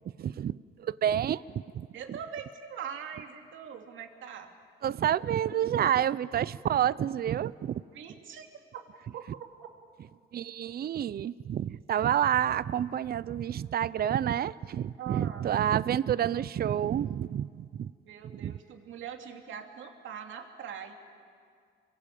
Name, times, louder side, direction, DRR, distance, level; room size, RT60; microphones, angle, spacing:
voice 1, 0.2-1.4 1.7-2.2 4.8-7.8 10.3-17.9 18.3-18.6, right 10 dB, 50° right, 19 dB, 0.6 m, -29 dB
voice 2, 1.9-4.5 7.9-8.5 8.7-8.8 9.1-9.2 15.0-15.4 18.1-20.9, right 8 dB, 75° right, 4 dB, 2.8 m, -42 dB
28.5 x 23.0 x 8.5 m, 2.2 s
cardioid pair, 90°, 20 cm